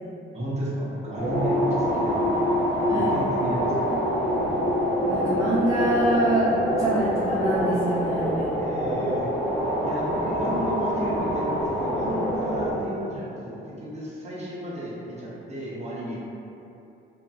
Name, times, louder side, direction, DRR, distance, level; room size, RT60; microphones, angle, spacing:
voice 1, 0.3-2.2 2.9-3.9 8.6-9.3 9.8-16.2, equal, 35° right, -7 dB, 0.8 m, -33 dB
sound 1, 1.2-12.7, equal, 60° right, 1.1 m, -25 dB
voice 2, 5.0-6.5 6.8-8.5, right 1 dB, 15° right, -9 dB, 0.4 m, -25 dB
2.6 x 2.5 x 2.3 m, 2.8 s
cardioid pair, 90°, 20 cm